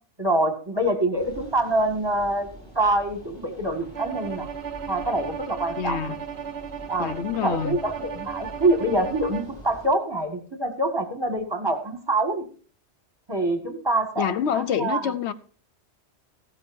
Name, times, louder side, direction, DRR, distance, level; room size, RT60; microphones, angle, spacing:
voice 1, 0.2-2.5 2.8-4.5 4.9-6.2 6.9-7.1 7.4-12.5 13.3-15.1, right 1 dB, 20° right, 1.9 m, -25 dB
sound 1, 1.2-9.9, right 1 dB, 20° left, 4.7 m, -45 dB
Bowed string instrument, 3.9-9.6, right 8 dB, 70° right, 1.2 m, -36 dB
voice 2, 5.8-6.2 7.0-7.8 14.2-15.3, left 8 dB, 80° left, 1.0 m, -26 dB
15.0 x 13.0 x 2.6 m
omnidirectional pair, 1.1 m